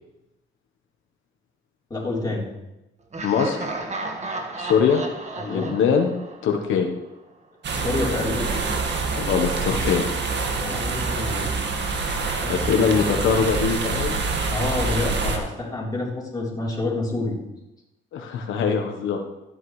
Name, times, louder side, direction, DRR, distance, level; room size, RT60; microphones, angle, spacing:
voice 1, 1.9-2.5 5.3-5.8 7.7-8.5 10.5-11.6 12.4-12.8 14.5-17.4, left 2 dB, 20° left, -4 dB, 3.8 m, -28 dB
Laughter, 3.1-7.0, right 2 dB, 35° right, 1.6 m, -33 dB
voice 2, 3.2-3.7 4.6-5.0 5.5-6.1 6.4-6.9 9.2-10.1 12.5-14.2 18.1-19.2, left 6 dB, 85° left, 3 dB, 1.1 m, -22 dB
sound 1, 7.6-15.4, right 4 dB, 60° right, 1.8 m, -26 dB
13.0 x 9.0 x 3.2 m, 0.96 s
cardioid pair, 90°, 20 cm